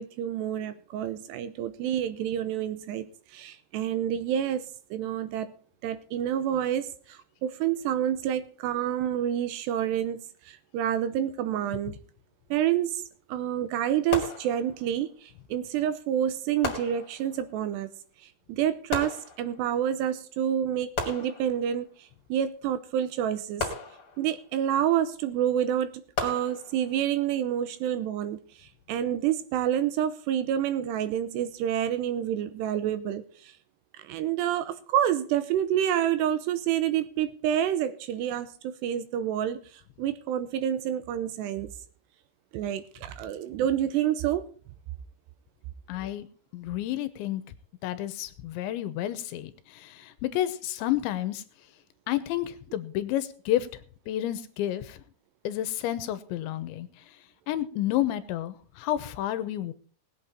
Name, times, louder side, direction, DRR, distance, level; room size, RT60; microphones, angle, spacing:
voice 1, 0.0-5.5 5.8-12.0 12.5-17.9 18.5-23.7 24.2-25.9 26.2-33.5 34.0-41.7 42.5-44.4, right 10 dB, 80° right, 12 dB, 2.8 m, -28 dB
sound 1, 14.1-15.0 16.6-17.5 18.9-19.8 21.0-21.9 23.6-24.5 26.2-27.0, left 3 dB, 35° left, 2.8 m, -35 dB
voice 2, 45.9-46.3 46.5-47.4 47.8-51.4 52.1-53.8 54.1-55.0 55.4-56.9 57.5-59.7, left 13 dB, 85° left, 12 dB, 3.2 m, -30 dB
19.5 x 8.4 x 4.3 m, 0.43 s
omnidirectional pair, 5.2 m